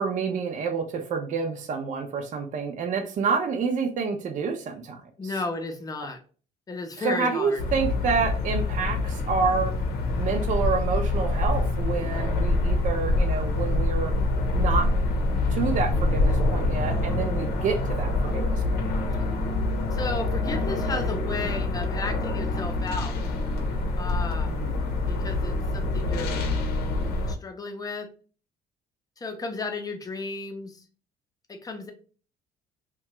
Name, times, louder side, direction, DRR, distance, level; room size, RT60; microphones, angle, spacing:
voice 1, 0.0-5.0 7.0-9.7 10.2-14.1 14.5-14.9 15.5-18.9 24.5-24.8, right 5 dB, 50° right, 4 dB, 0.6 m, -28 dB
voice 2, 5.2-6.2 6.7-7.6 19.9-23.2 24.0-24.6 25.1-26.5 27.3-28.1 29.2-30.8 31.5-31.9, left 3 dB, 20° left, 5 dB, 0.6 m, -33 dB
sound 1, 7.6-27.3, left 2 dB, 70° left, 0.7 m, -26 dB
2.8 x 2.2 x 2.9 m, 0.38 s
cardioid pair, 110°, 17 cm